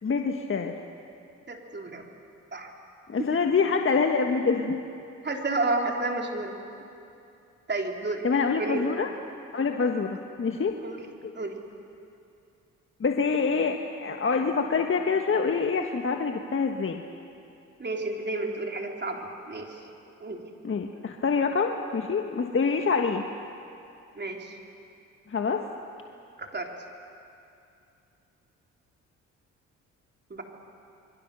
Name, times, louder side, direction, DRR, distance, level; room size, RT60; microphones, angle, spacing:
voice 1, 0.0-0.8 3.1-4.8 8.2-9.1 9.5-10.7 11.2-11.3 13.0-17.0 20.6-23.3 25.3-25.6, left 5 dB, 40° left, 4 dB, 1.5 m, -26 dB
voice 2, 1.5-2.1 2.5-2.7 3.2-3.3 5.2-6.6 7.7-8.2 8.6-8.9 10.8-11.1 11.3-11.6 17.8-19.9 20.2-20.4 24.1-24.6 26.4-26.7 30.3-30.4, right 2 dB, 35° right, 2 dB, 3.7 m, -31 dB
26.5 x 23.0 x 6.9 m, 2.6 s
supercardioid pair, 55°, 32 cm